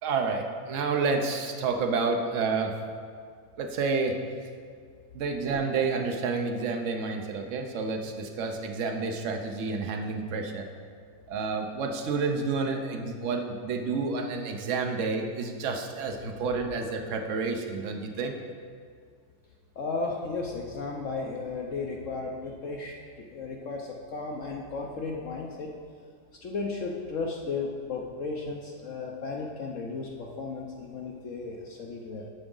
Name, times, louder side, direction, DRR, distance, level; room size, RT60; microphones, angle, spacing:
voice 1, 0.0-2.7 3.6-4.2 5.1-10.7 11.3-18.3, right 4 dB, 55° right, 4 dB, 1.0 m, -29 dB
voice 2, 19.8-25.7 26.4-32.3, left 4 dB, 60° left, 0 dB, 0.9 m, -34 dB
13.0 x 4.9 x 3.8 m, 2.2 s
omnidirectional pair, 1.7 m